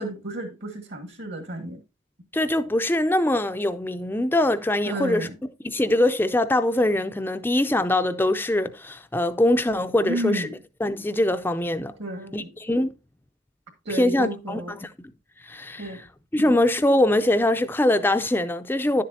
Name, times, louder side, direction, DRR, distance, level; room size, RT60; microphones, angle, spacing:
voice 1, 0.0-1.8 4.9-5.3 10.0-10.5 12.0-12.5 13.8-14.8 15.8-16.0 16.4-16.6, right 1 dB, 60° right, 1.7 m, -32 dB
voice 2, 2.3-5.3 5.6-10.5 10.8-11.9 12.3-12.9 13.9-14.9 15.4-16.1 16.3-19.0, left 1 dB, 10° left, 0.4 m, -23 dB
10.5 x 7.4 x 2.6 m
head